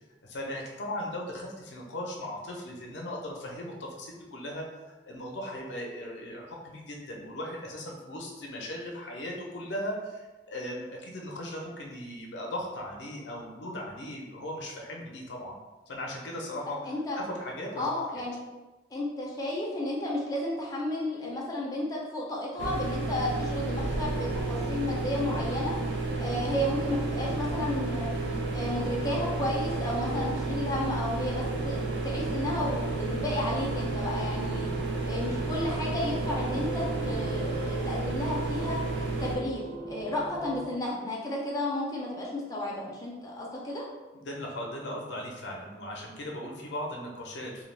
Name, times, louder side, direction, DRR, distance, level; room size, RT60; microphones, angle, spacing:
voice 1, 0.2-4.6 5.1-15.6 15.9-16.8 17.2-17.9 44.1-47.6, left 1 dB, 80° left, -1 dB, 0.5 m, -38 dB
voice 2, 16.8-17.2 17.8-18.4 18.9-25.7 26.2-28.1 28.5-34.7 35.0-38.8 39.2-43.8, left 1 dB, 20° left, -4 dB, 0.5 m, -32 dB
sound 1, 22.6-39.4, right 3 dB, 80° right, 0.4 m, -31 dB
sound 2, 23.7-40.7, right 1 dB, 35° right, 0.7 m, -42 dB
2.3 x 2.2 x 3.2 m, 1.1 s
head